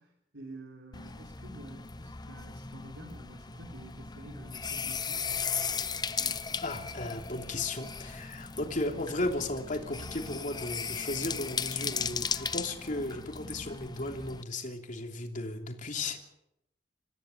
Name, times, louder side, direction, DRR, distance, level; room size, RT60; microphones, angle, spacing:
voice 1, 0.0-5.3, right 1 dB, 85° right, 2 dB, 3.9 m, -49 dB
sound 1, 0.9-14.4, left 6 dB, 25° left, 0.8 m, -37 dB
voice 2, 6.1-16.2, left 2 dB, 45° left, 3 dB, 3.0 m, -35 dB
27.0 x 15.0 x 7.3 m, 0.81 s
head